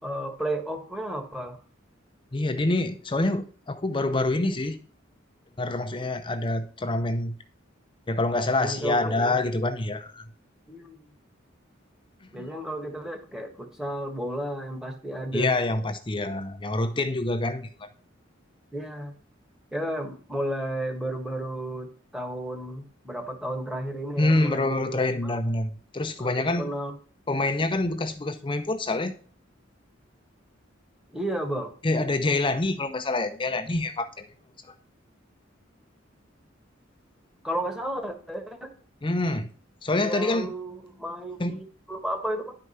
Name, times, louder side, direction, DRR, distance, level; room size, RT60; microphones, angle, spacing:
voice 1, 0.0-1.6 8.6-9.4 10.7-11.1 12.3-15.5 18.7-19.1 19.7-25.3 26.2-26.9 31.1-31.7 37.4-38.7 39.9-42.6, right 1 dB, 5° right, 1.4 m, -33 dB
voice 2, 2.3-4.8 5.6-7.4 8.1-10.2 12.4-12.5 15.3-17.9 24.2-26.7 27.3-29.1 31.8-34.3 34.7-34.8 39.0-39.5 39.8-40.5 41.4-41.7, left 2 dB, 25° left, 0.6 m, -26 dB
10.5 x 4.8 x 5.6 m
head